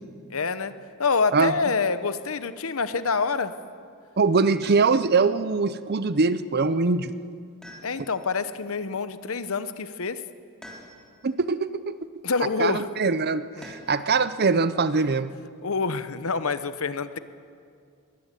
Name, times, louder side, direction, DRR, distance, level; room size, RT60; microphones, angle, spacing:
voice 1, 0.3-0.7 1.0-3.5 7.8-10.2 12.2-12.9 13.6-13.7 15.6-17.2, left 4 dB, 65° left, 12 dB, 0.9 m, -26 dB
voice 2, 4.2-7.2 11.2-12.0 12.6-15.3, right 4 dB, 45° right, 14 dB, 0.7 m, -23 dB
sound 1, 4.6-5.3 7.6-8.4 10.6-11.3 13.6-14.1 15.8-16.5, equal, 5° left, 3.6 m, -47 dB
22.0 x 17.0 x 8.2 m, 2.3 s
head